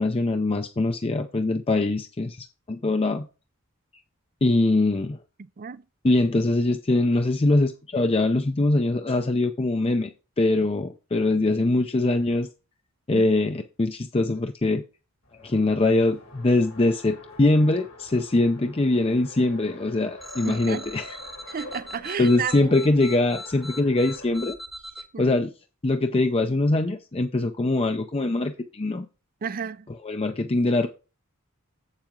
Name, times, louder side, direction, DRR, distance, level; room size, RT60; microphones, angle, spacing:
voice 1, 0.0-3.3 4.4-5.2 6.0-10.1 10.4-12.5 13.1-14.8 15.4-21.2 22.2-24.6 25.2-25.5 25.8-29.1 30.0-30.9, left 2 dB, 25° left, 0.5 m, -23 dB
Race car auto racing, 15.2-24.5, left 2 dB, 70° left, 2.0 m, -46 dB
sound 1, 20.2-25.0, left 1 dB, ahead, 0.9 m, -40 dB
voice 2, 20.4-20.9 21.5-22.7 25.1-25.3 29.4-29.9, right 7 dB, 40° right, 0.4 m, -32 dB
7.7 x 7.3 x 3.8 m
head